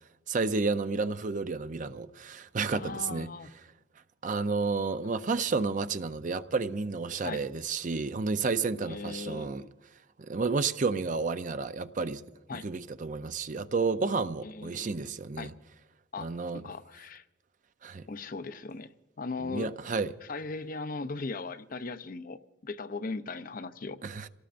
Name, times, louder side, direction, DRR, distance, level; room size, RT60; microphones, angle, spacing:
voice 1, 0.3-3.3 4.2-9.6 10.2-12.2 12.5-15.5 16.2-16.6 17.8-18.0 19.4-20.1 24.0-24.3, right 4 dB, 45° right, 0.5 m, -31 dB
voice 2, 2.7-3.5 7.2-7.4 8.8-9.7 12.5-12.7 14.4-14.9 15.4-15.5 16.1-17.2 18.1-19.7 20.2-24.0, left 3 dB, 50° left, 0.6 m, -38 dB
27.5 x 18.0 x 2.5 m
head